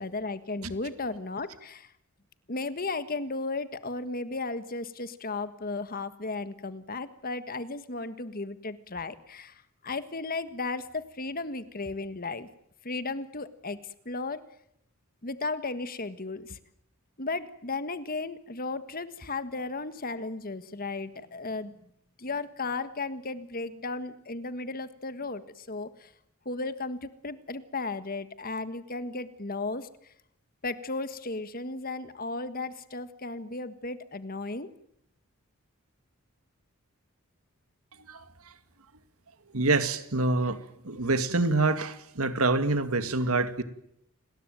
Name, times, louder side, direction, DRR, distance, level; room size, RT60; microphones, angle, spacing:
voice 1, 0.0-1.9 2.5-12.5 12.8-13.8 14.0-14.4 15.2-16.6 17.2-21.8 22.2-26.1 26.4-29.9 30.6-34.7, left 3 dB, 40° left, 12 dB, 1.6 m, -35 dB
voice 2, 39.5-40.6 40.8-43.6, right 3 dB, 75° right, 11 dB, 2.2 m, -26 dB
29.0 x 20.5 x 9.2 m, 0.76 s
head